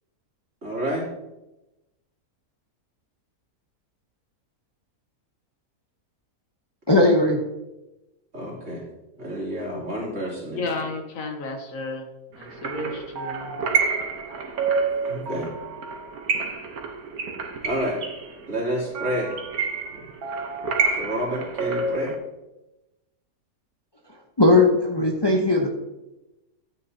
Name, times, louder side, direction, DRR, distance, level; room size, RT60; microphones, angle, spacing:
voice 1, 0.6-1.1 8.3-8.8 9.2-10.9 15.1-15.5 17.6-18.0 18.5-19.3 20.9-22.1, right 1 dB, 55° right, 3.3 m, -29 dB
voice 2, 6.9-7.4 24.4-25.7, left 2 dB, 20° left, 0.9 m, -18 dB
voice 3, 10.5-12.0 12.4-13.6, left 3 dB, 65° left, 1.5 m, -32 dB
sound 1, 12.4-22.1, right 4 dB, 80° right, 1.6 m, -28 dB
13.5 x 8.6 x 2.8 m
omnidirectional pair, 1.5 m